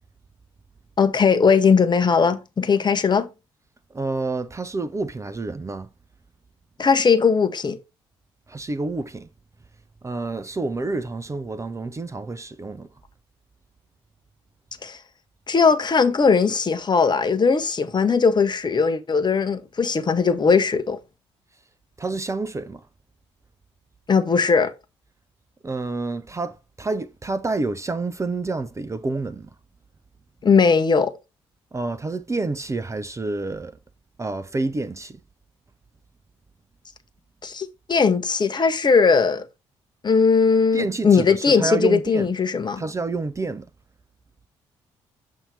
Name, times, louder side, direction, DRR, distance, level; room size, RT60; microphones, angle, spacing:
voice 1, 1.0-3.3 6.8-7.8 14.8-15.0 15.5-21.0 24.1-24.7 30.4-31.1 37.4-39.4 40.0-42.8, left 5 dB, 30° left, 0.9 m, -19 dB
voice 2, 3.9-5.9 8.5-9.3 10.0-12.9 22.0-22.8 25.6-29.5 31.7-33.7 34.2-35.2 40.7-42.3 42.8-43.7, right 3 dB, 20° right, 0.6 m, -28 dB
7.2 x 2.8 x 5.1 m
figure-of-eight pair, 40°, 14 cm